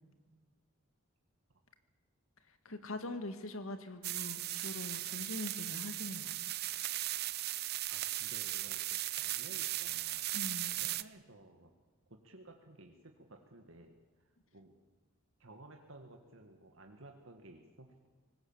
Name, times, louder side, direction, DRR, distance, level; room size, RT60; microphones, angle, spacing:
voice 1, 2.7-6.4 10.3-10.7, left 2 dB, 80° left, 8 dB, 2.0 m, -43 dB
sound 1, 4.0-11.0, right 15 dB, 50° right, 0.6 m, -37 dB
voice 2, 7.9-10.3 10.6-11.7 12.1-14.8 15.4-18.1, right 2 dB, 70° right, 4 dB, 1.8 m, -56 dB
25.0 x 19.5 x 7.3 m, 1.4 s
head